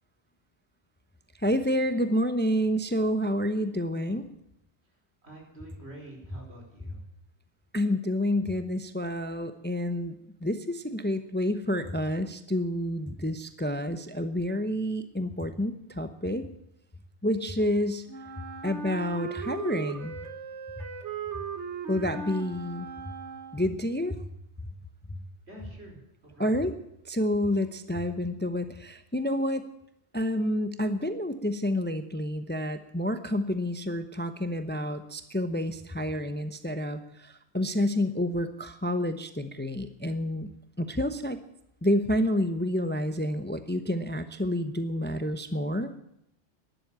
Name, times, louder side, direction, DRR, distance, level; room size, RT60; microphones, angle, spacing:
voice 1, 1.4-4.3 7.7-10.1 10.4-16.5 17.2-18.0 18.6-20.2 20.8-20.9 21.9-22.9 23.5-24.3 25.1-25.2 26.4-26.7 27.0-29.6 30.1-40.5 40.8-41.4 41.8-46.0, left 1 dB, 10° left, 10 dB, 0.8 m, -29 dB
voice 2, 5.2-7.0 25.5-26.7, right 1 dB, 70° right, -1 dB, 5.0 m, -47 dB
Wind instrument woodwind instrument, 18.1-23.9, right 5 dB, 90° right, 1.7 m, -38 dB
12.5 x 11.0 x 8.7 m, 0.79 s
omnidirectional pair, 1.1 m